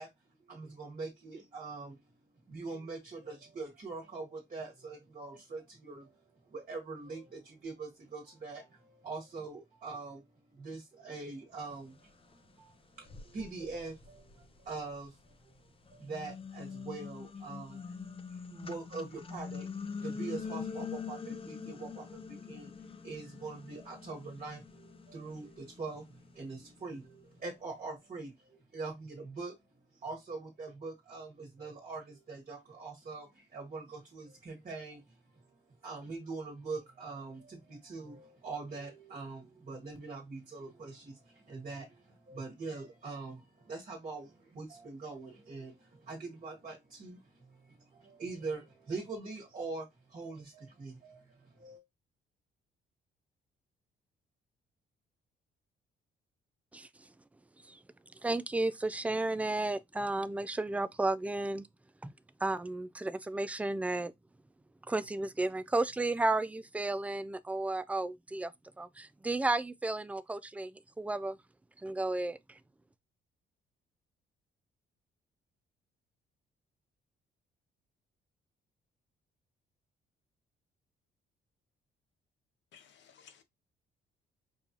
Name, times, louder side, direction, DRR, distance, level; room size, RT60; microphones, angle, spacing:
voice 1, 0.0-2.0 2.5-15.5 15.9-51.8, right 3 dB, 40° right, 1.3 m, -43 dB
sound 1, 12.3-12.4 13.0-15.3 15.9-27.2, left 5 dB, 30° left, 0.6 m, -44 dB
voice 2, 58.2-61.7 62.0-62.1 62.4-64.1 64.9-68.5 68.8-71.4 71.8-72.4, right 2 dB, 5° right, 0.3 m, -33 dB
voice 3, 82.7-83.4, left 8 dB, 65° left, 0.9 m, -58 dB
5.3 x 2.3 x 2.8 m
cardioid pair, 90°, 20 cm